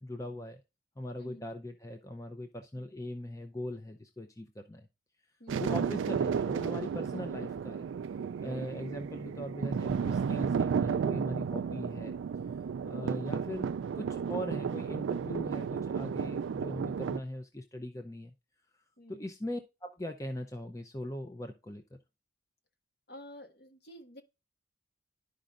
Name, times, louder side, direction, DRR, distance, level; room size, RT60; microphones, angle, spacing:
voice 1, 0.0-0.6 1.0-4.9 5.6-7.9 8.4-12.2 12.9-18.3 19.1-22.0, left 1 dB, 15° left, 0.6 m, -40 dB
voice 2, 1.2-1.5 2.7-2.9 5.4-5.7 8.4-8.8 19.0-19.3 23.1-24.2, left 1 dB, 55° left, 1.6 m, -50 dB
sound 1, 5.5-17.2, right 6 dB, 75° right, 0.3 m, -33 dB
11.5 x 5.2 x 2.5 m
head